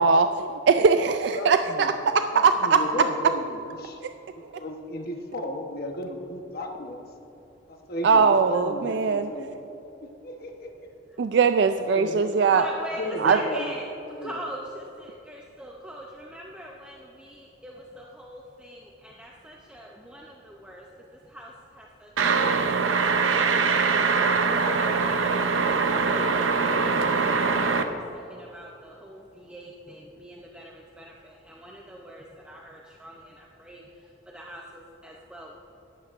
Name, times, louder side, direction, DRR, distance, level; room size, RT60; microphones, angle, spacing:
voice 1, 0.0-1.9 2.3-2.8 8.0-9.3 11.2-12.7 13.2-13.4, right 5 dB, 60° right, 8 dB, 0.3 m, -20 dB
voice 2, 1.3-1.9 2.2-4.0 4.4-7.0 7.7-9.5 10.0-10.9 11.9-12.3 12.9-13.7 14.1-14.4, left 1 dB, 50° left, 2 dB, 1.0 m, -34 dB
voice 3, 12.5-13.8 14.2-20.8 21.3-23.0 27.2-33.8 34.3-35.6, equal, 5° right, -2 dB, 0.6 m, -42 dB
sound 1, 22.2-27.8, right 4 dB, 85° right, 0.7 m, -23 dB
14.0 x 11.0 x 2.5 m, 2.8 s
head